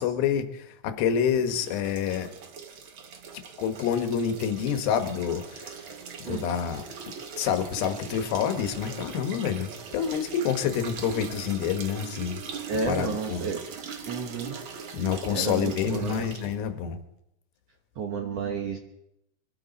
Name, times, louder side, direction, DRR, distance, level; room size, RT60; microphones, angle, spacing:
voice 1, 0.0-2.3 3.6-5.8 6.3-6.8 7.4-12.4 12.7-13.5 14.9-17.0, left 8 dB, 75° left, 8 dB, 2.9 m, -28 dB
sound 1, 1.4-16.6, right 6 dB, 90° right, 1.1 m, -41 dB
voice 2, 12.7-13.6 14.1-14.6 15.3-16.2 18.0-18.8, right 5 dB, 65° right, 4 dB, 1.6 m, -31 dB
24.0 x 13.0 x 4.1 m, 0.85 s
omnidirectional pair, 4.3 m